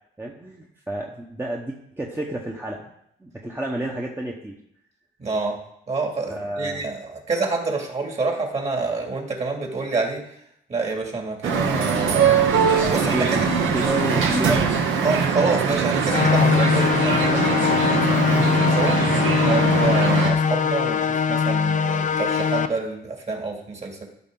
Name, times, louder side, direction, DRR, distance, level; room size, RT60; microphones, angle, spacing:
voice 1, 0.2-2.9 3.2-4.6 6.3-6.8 12.2-14.7, right 1 dB, 10° right, -1 dB, 1.1 m, -30 dB
voice 2, 5.2-5.6 5.9-10.2 10.7-12.3 12.9-13.5 15.0-19.0 19.4-24.1, right 3 dB, 35° right, 1 dB, 2.5 m, -27 dB
sound 1, 11.4-20.3, right 6 dB, 80° right, 1.3 m, -22 dB
sound 2, 16.1-22.7, left 6 dB, 40° left, 0.6 m, -21 dB
13.5 x 5.6 x 3.9 m, 0.74 s
cardioid pair, 90°, 20 cm